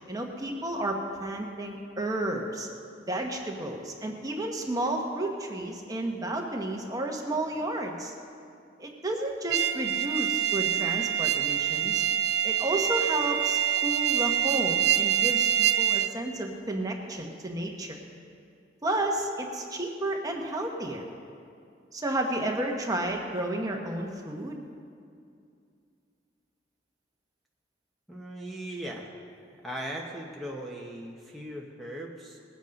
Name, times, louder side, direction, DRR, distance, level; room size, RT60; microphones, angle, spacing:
voice 1, 0.1-2.7 3.1-8.1 8.8-12.0 12.4-18.0 18.8-21.1 21.9-24.6, right 1 dB, 20° right, 1 dB, 1.2 m, -32 dB
sound 1, 9.5-16.1, right 10 dB, 65° right, 0.5 m, -26 dB
voice 2, 28.1-29.1 29.6-32.4, right 1 dB, ahead, -2 dB, 1.0 m, -38 dB
20.0 x 8.3 x 5.3 m, 2.4 s
head